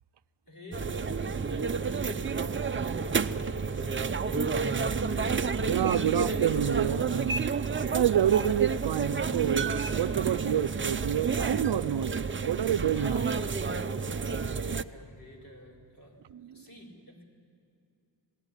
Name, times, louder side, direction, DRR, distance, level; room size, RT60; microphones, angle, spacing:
voice 1, 0.5-4.9 12.9-13.6 14.0-16.2 16.5-17.2, left 1 dB, 50° left, 4.6 m, -49 dB
sound 1, 0.7-14.8, right 5 dB, 30° right, 0.6 m, -30 dB
voice 2, 5.7-7.5 7.9-12.1 12.5-13.3 16.3-16.6, right 10 dB, 65° right, 0.7 m, -28 dB
27.0 x 18.5 x 9.9 m
wide cardioid pair, 155°, 44 cm